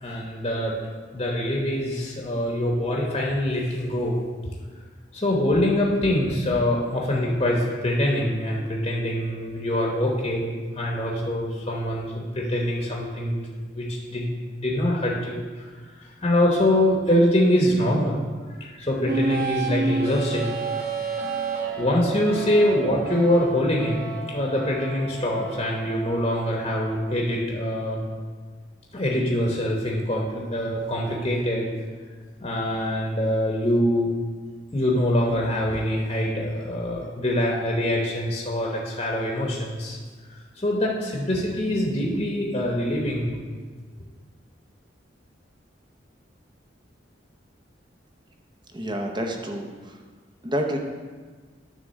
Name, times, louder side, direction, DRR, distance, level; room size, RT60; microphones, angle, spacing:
voice 1, 0.0-4.2 5.1-13.4 13.7-15.4 16.0-18.1 18.6-20.5 21.8-24.0 24.3-28.0 28.9-31.7 32.4-34.1 34.7-40.0 40.6-43.4, left 1 dB, 30° left, -2 dB, 1.0 m, -24 dB
sound 1, 19.0-27.1, right 4 dB, 55° right, 1.2 m, -30 dB
voice 2, 48.7-49.7 50.4-50.8, equal, 25° right, 2 dB, 0.8 m, -27 dB
9.6 x 3.6 x 6.4 m, 1.5 s
head